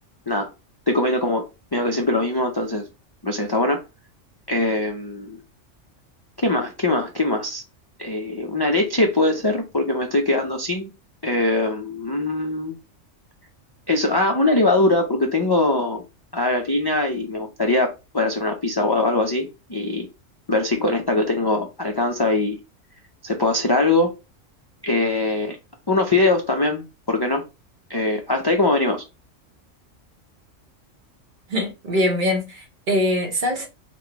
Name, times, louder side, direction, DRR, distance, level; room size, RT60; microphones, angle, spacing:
voice 1, 0.9-1.5 1.7-2.9 3.2-3.8 4.5-5.4 6.4-7.6 8.0-10.9 11.2-12.7 13.9-16.0 16.3-20.1 20.5-22.6 23.2-24.1 24.8-25.6 25.9-27.4 27.9-29.0, left 2 dB, 40° left, 0.3 m, -22 dB
voice 2, 31.5-33.7, left 1 dB, 45° right, 0.9 m, -23 dB
4.3 x 2.2 x 3.9 m
omnidirectional pair, 1.3 m